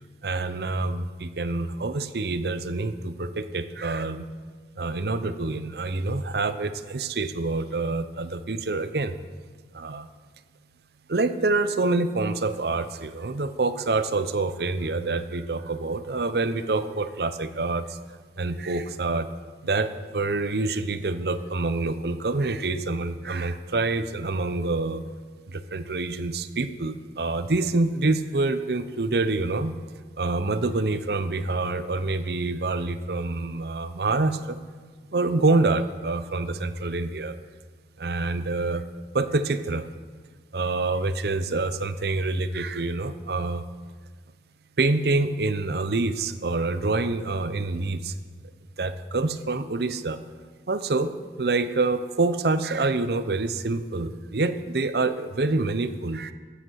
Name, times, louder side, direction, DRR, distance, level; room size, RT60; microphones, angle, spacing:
voice 1, 0.2-4.2 4.8-9.2 9.7-10.1 11.1-18.0 18.4-19.3 19.6-25.0 25.5-29.8 30.2-34.6 35.1-37.4 38.0-38.8 39.1-39.9 40.5-43.6 44.8-48.1 48.8-50.2 50.7-51.1 51.4-56.3, right 3 dB, 65° right, 11 dB, 0.7 m, -26 dB
15.0 x 8.0 x 6.3 m, 1.5 s
head